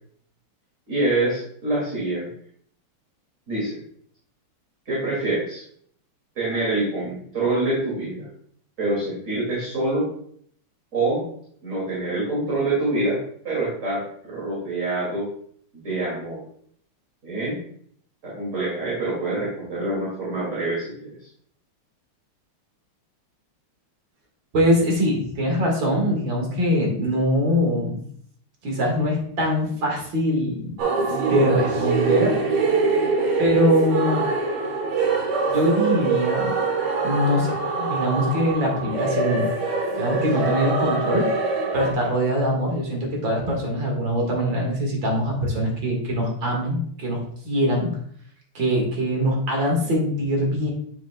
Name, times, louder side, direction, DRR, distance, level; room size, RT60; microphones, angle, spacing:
voice 1, 0.9-2.3 3.5-3.8 4.9-5.6 6.4-8.3 8.8-10.1 10.9-11.2 11.6-13.2 13.4-15.3 15.7-16.4 17.2-17.6 18.2-21.2, right 2 dB, 35° right, -7 dB, 2.5 m, -26 dB
voice 2, 24.5-28.0 28.6-30.7 31.1-32.4 33.4-34.2 35.5-36.5 37.0-39.5 40.0-41.3 41.7-47.9 48.5-50.7, equal, 60° right, 0 dB, 2.4 m, -23 dB
sound 1, 30.8-41.9, right 3 dB, 75° right, 2.1 m, -24 dB
8.6 x 5.9 x 2.2 m, 0.62 s
omnidirectional pair, 2.4 m